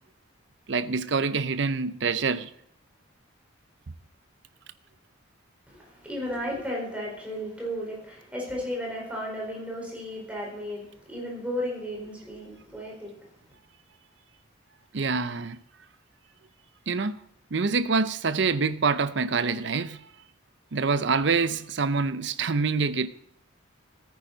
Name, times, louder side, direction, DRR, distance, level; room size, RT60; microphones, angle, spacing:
voice 1, 0.7-2.5 14.9-15.6 16.9-17.2 17.5-20.1 20.7-23.1, right 4 dB, 60° right, 0.6 m, -26 dB
voice 2, 5.7-13.4, equal, 5° right, 4.4 m, -34 dB
14.0 x 9.6 x 4.0 m
head